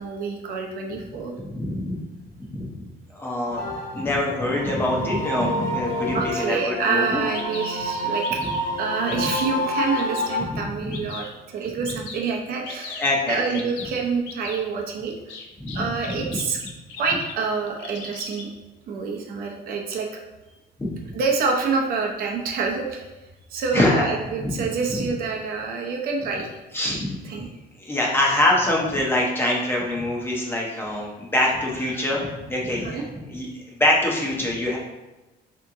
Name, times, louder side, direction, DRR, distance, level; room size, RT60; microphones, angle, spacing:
voice 1, 0.0-1.3 6.1-15.3 15.7-16.6 17.0-18.5 18.9-20.2 21.1-23.1 23.5-26.6 26.8-27.0 27.2-27.5 31.9-32.1 32.8-33.0, right 4 dB, 55° right, 1 dB, 0.7 m, -27 dB
voice 2, 1.5-2.0 2.5-2.6 3.1-3.6 3.9-7.2 9.1-9.2 10.5-11.0 13.0-13.6 15.6-15.8 20.8-21.0 23.7-24.1 24.4-24.6 26.7-27.4 27.8-33.0 33.3-34.8, left 1 dB, 10° left, -2 dB, 0.6 m, -24 dB
sound 1, 3.6-10.4, left 1 dB, 55° left, 1.3 m, -28 dB
Bird vocalization bird call bird song, 6.9-7.0 7.3-7.7 8.2-8.7 9.1-9.5 9.9-10.3 10.9-11.3 11.8-12.2 12.6-13.0 13.5-13.9 14.3-14.6 15.3-17.3 17.7-18.5, left 5 dB, 85° left, 0.6 m, -38 dB
3.5 x 2.9 x 3.5 m, 1.1 s
cardioid pair, 160°, 18 cm